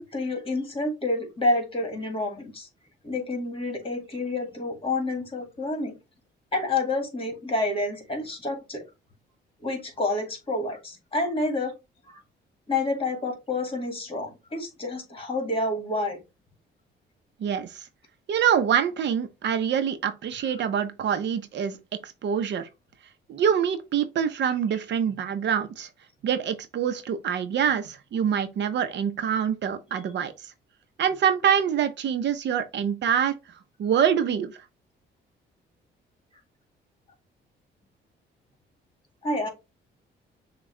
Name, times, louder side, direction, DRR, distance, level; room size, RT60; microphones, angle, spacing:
voice 1, 0.0-2.7 3.0-6.0 6.5-8.8 9.6-11.7 12.7-16.2 39.2-39.5, left 2 dB, 25° left, 1.9 m, -28 dB
voice 2, 17.4-17.9 18.3-21.8 22.0-22.7 23.3-25.9 26.2-30.3 31.0-33.3 33.8-34.6, right 8 dB, 65° right, 0.7 m, -25 dB
6.1 x 2.3 x 3.2 m
cardioid pair, 90°, 20 cm